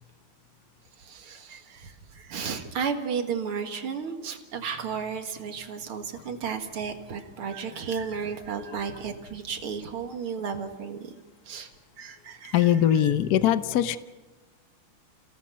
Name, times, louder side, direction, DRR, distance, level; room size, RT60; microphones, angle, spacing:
voice 1, 1.0-11.1 11.5-11.7 12.0-12.7 13.0-13.1, right 6 dB, 85° right, 6 dB, 2.6 m, -33 dB
voice 2, 12.5-14.0, left 10 dB, 60° left, 13 dB, 1.1 m, -22 dB
29.5 x 17.0 x 5.7 m, 1.3 s
omnidirectional pair, 2.3 m